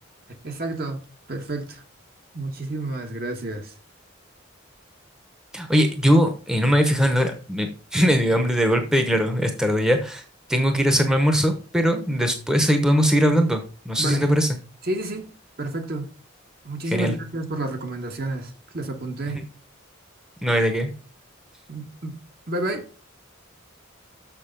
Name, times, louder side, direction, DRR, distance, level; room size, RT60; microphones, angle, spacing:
voice 1, 0.4-1.8 2.3-3.7 14.0-14.3 14.8-15.3 15.6-16.1 16.6-19.5 21.7-22.2 22.5-22.9, right 2 dB, 50° right, 1.4 m, -30 dB
voice 2, 5.5-10.2 10.5-14.6 16.9-17.1 19.3-19.4 20.4-20.9, equal, 5° right, 0.9 m, -20 dB
6.7 x 6.6 x 5.2 m
head